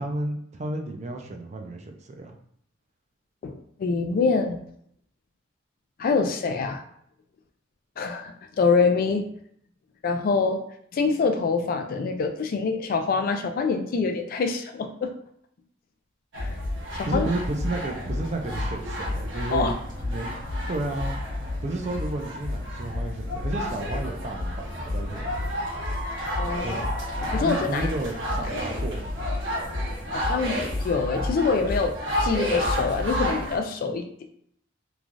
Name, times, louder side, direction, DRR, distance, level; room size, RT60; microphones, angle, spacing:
voice 1, 0.0-2.3 17.0-19.7 20.0-20.3 20.7-21.1 21.6-25.3 26.6-26.9 27.3-29.2, right 2 dB, 35° right, 3 dB, 0.4 m, -32 dB
voice 2, 3.4-4.6 6.0-6.8 8.0-9.3 10.0-10.6 10.9-15.1 16.3-16.5 16.9-17.3 19.5-19.7 26.4-26.8 27.2-27.9 28.4-28.5 30.1-34.3, left 4 dB, 45° left, 7 dB, 0.3 m, -25 dB
sound 1, 16.3-33.6, left 1 dB, 65° right, 1.0 m, -30 dB
3.1 x 2.3 x 2.5 m, 0.67 s
head